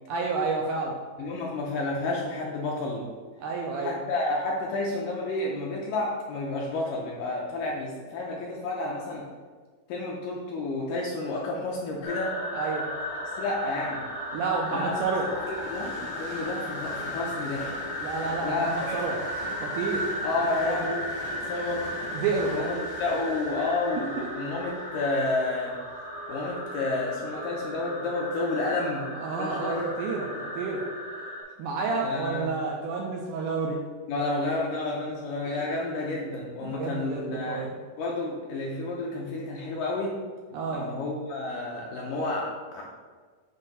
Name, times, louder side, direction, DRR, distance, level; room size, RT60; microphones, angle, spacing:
voice 1, 0.1-1.0 3.4-4.0 12.6-12.9 14.3-15.3 18.0-19.2 19.6-20.1 20.5-20.9 22.1-22.6 24.0-24.3 29.2-30.8 31.6-33.8 35.4-35.5 36.6-37.7 40.5-40.9, right 4 dB, 90° right, -1 dB, 1.8 m, -30 dB
voice 2, 1.2-3.1 3.8-9.2 9.9-12.3 13.2-14.0 14.7-14.9 15.2-17.7 18.4-19.2 20.2-21.8 22.5-25.8 26.3-29.1 29.4-29.9 32.0-32.5 34.1-37.7 38.0-40.2 40.7-42.8, left 2 dB, 75° left, -2 dB, 2.0 m, -30 dB
sound 1, 12.0-31.4, left 1 dB, 55° left, 1.1 m, -35 dB
Train, 12.1-28.1 28.7-28.8, equal, 30° left, 0.8 m, -45 dB
8.0 x 2.7 x 5.3 m, 1.5 s
omnidirectional pair, 4.3 m